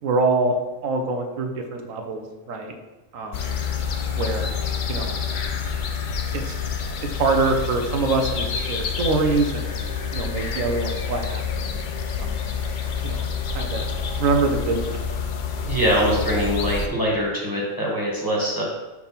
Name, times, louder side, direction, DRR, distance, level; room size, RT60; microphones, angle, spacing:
voice 1, 0.0-0.6 0.8-2.7 3.1-3.6 4.1-4.5 4.9-5.1 6.3-6.6 7.0-9.7 10.1-11.8 12.2-12.4 13.0-13.3 13.5-13.9 14.2-15.0, right 3 dB, 80° right, 4 dB, 1.1 m, -24 dB
sound 1, 3.3-16.9, left 6 dB, 60° left, 0.5 m, -28 dB
voice 2, 15.6-18.6, equal, 15° left, -5 dB, 1.6 m, -23 dB
5.8 x 3.6 x 5.7 m, 1.1 s
omnidirectional pair, 1.4 m